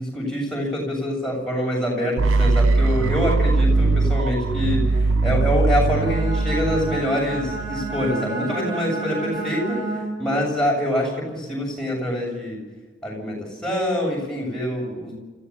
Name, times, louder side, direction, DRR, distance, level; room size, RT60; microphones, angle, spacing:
voice 1, 0.0-9.8 10.2-12.6 13.0-15.2, equal, 5° left, -3 dB, 7.3 m, -25 dB
sound 1, 2.2-8.1, right 3 dB, 85° right, 0.6 m, -21 dB
Bowed string instrument, 5.9-10.3, right 3 dB, 20° right, 6.4 m, -31 dB
29.5 x 15.5 x 7.2 m, 1.2 s
head